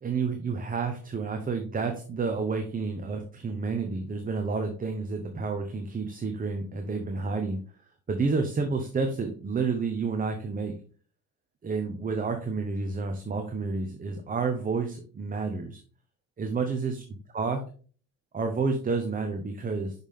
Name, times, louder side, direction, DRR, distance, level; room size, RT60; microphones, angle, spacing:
voice 1, 0.0-7.6 8.1-10.7 11.6-15.8 16.4-17.0 17.3-17.6 18.3-19.9, right 4 dB, 25° right, 5 dB, 0.9 m, -30 dB
6.1 x 5.4 x 3.6 m, 0.41 s
cardioid pair, 115°, 35 cm